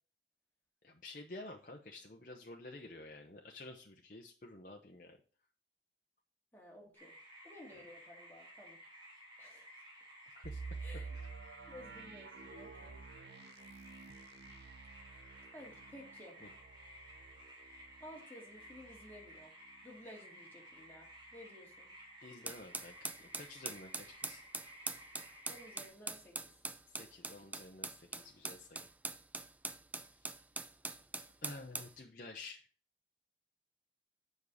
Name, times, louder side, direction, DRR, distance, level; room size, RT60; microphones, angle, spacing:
voice 1, 0.8-5.2 10.3-10.6 16.4-16.5 22.2-24.4 26.9-28.9 31.4-32.6, left 2 dB, 50° left, 2 dB, 0.8 m, -51 dB
voice 2, 6.5-7.1 7.4-8.8 9.4-9.7 10.8-11.2 11.7-13.0 15.1-15.2 15.5-16.4 17.6-19.5 19.8-21.9 25.5-26.3, left 1 dB, 10° left, -2 dB, 2.1 m, -54 dB
sound 1, 6.9-25.9, equal, 25° right, 2.2 m, -56 dB
sound 2, 10.4-20.2 20.5-20.6 21.1-21.4, right 4 dB, 70° right, 0.8 m, -50 dB
sound 3, 22.5-31.9, right 3 dB, 10° right, 0.3 m, -43 dB
7.2 x 5.5 x 4.9 m, 0.40 s
head